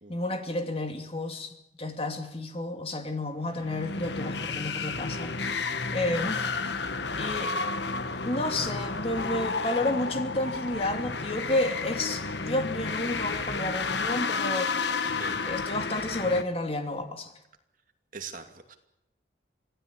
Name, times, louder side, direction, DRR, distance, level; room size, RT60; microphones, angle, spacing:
voice 1, 0.1-6.8 7.2-7.5 8.2-14.7 15.5-17.3, left 1 dB, 30° left, 6 dB, 2.6 m, -31 dB
sound 1, 3.5-16.4, left 4 dB, 75° left, 1.4 m, -31 dB
voice 2, 15.0-15.4 18.1-18.7, right 5 dB, 45° right, 5 dB, 2.6 m, -42 dB
26.5 x 16.5 x 8.5 m, 0.83 s
head